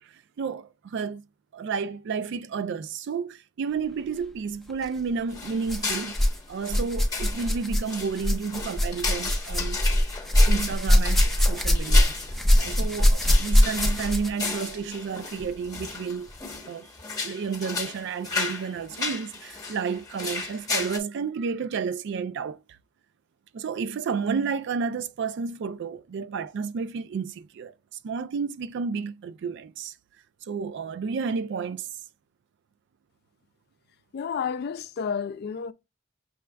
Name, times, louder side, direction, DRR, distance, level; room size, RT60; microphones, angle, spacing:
voice 1, 0.0-1.2 1.5-6.2 6.5-10.1 10.5-16.3 16.7-16.9 17.2-22.6 23.5-27.7 28.0-29.9 30.5-31.9, right 5 dB, 60° right, 0.3 m, -31 dB
sound 1, 4.7-4.9 5.6-6.4 6.6-14.4 15.4-15.5 16.3-16.4, left 1 dB, ahead, 0.8 m, -22 dB
sound 2, 5.3-21.0, left 4 dB, 20° left, 1.2 m, -34 dB
voice 2, 34.1-35.7, left 6 dB, 50° left, 0.3 m, -31 dB
6.1 x 2.3 x 3.3 m
head